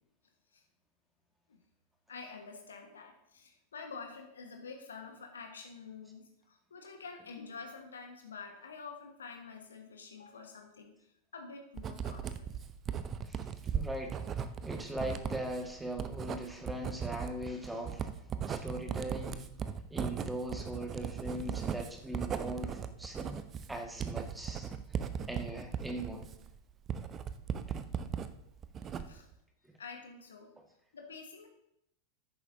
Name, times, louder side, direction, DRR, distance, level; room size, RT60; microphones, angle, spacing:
voice 1, 2.1-12.6 28.8-29.3 29.8-30.5 30.9-31.5, left 5 dB, 70° left, 4 dB, 1.4 m, -48 dB
Writing, 11.8-28.3 28.6-29.3, right 7 dB, 25° right, 0.7 m, -38 dB
voice 2, 13.2-18.1 18.5-19.5 19.9-23.4 23.7-25.0 25.3-26.3 29.7-29.8, right 1 dB, 5° right, 2 dB, 1.8 m, -40 dB
13.5 x 10.5 x 2.8 m, 0.79 s
figure-of-eight pair, 90°, 0 cm